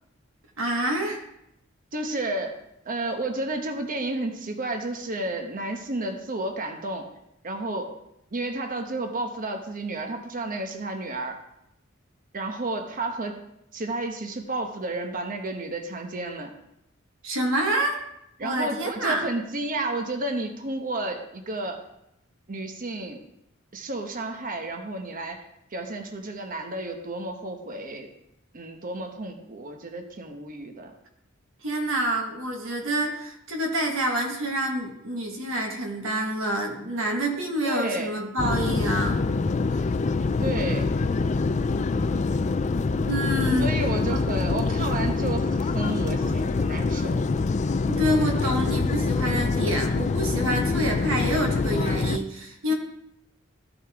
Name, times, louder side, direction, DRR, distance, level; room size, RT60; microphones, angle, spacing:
voice 1, 0.6-1.2 17.2-18.0 18.4-19.3 31.6-39.2 39.7-39.9 43.1-43.7 44.1-44.2 47.9-52.7, right 1 dB, 70° right, 0 dB, 1.5 m, -27 dB
voice 2, 1.9-2.6 2.8-7.1 7.4-7.9 8.3-11.4 12.3-13.4 13.7-16.5 18.4-21.8 22.5-23.2 23.7-25.4 25.7-28.1 28.5-30.9 37.6-38.1 40.4-40.9 43.6-47.2, right 2 dB, 45° right, 5 dB, 1.0 m, -31 dB
sound 1, 38.4-52.2, left 3 dB, 35° left, 0.4 m, -25 dB
14.0 x 5.4 x 3.6 m, 0.81 s
head